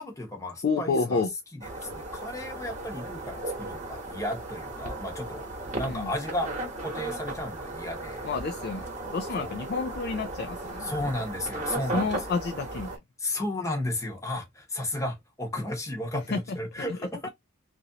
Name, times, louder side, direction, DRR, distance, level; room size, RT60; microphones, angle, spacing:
voice 1, 0.0-1.9 2.2-5.5 5.7-6.5 6.8-8.3 9.4-9.6 10.8-12.3 13.2-17.3, left 1 dB, 15° left, 0.9 m, -34 dB
voice 2, 0.6-1.3 5.9-6.1 8.2-11.2 11.9-12.9 16.3-16.4 16.8-17.0, left 4 dB, 45° left, 0.3 m, -30 dB
sound 1, 1.6-13.0, right 2 dB, 35° right, 1.1 m, -36 dB
3.0 x 2.6 x 2.7 m
head